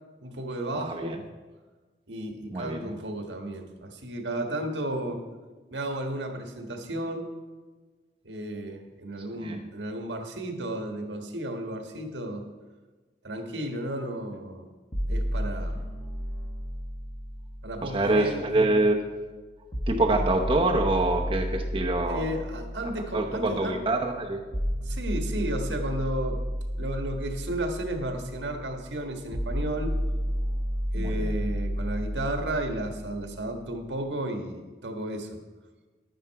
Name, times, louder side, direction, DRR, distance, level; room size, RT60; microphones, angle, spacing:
voice 1, 0.2-1.2 2.1-5.2 5.7-7.3 8.2-12.4 13.2-14.6 15.1-15.8 17.6-18.7 22.1-23.8 24.8-26.4 26.8-29.9 30.9-35.3, right 1 dB, 85° right, 4 dB, 1.5 m, -33 dB
voice 2, 0.7-1.2 2.5-2.9 9.4-9.6 17.8-19.0 19.9-22.4 23.1-24.4 30.9-31.4, right 2 dB, 30° right, 1 dB, 0.8 m, -25 dB
sound 1, 14.9-18.9 19.7-33.7, equal, 25° left, 1.3 m, -32 dB
11.5 x 9.4 x 4.7 m, 1.3 s
head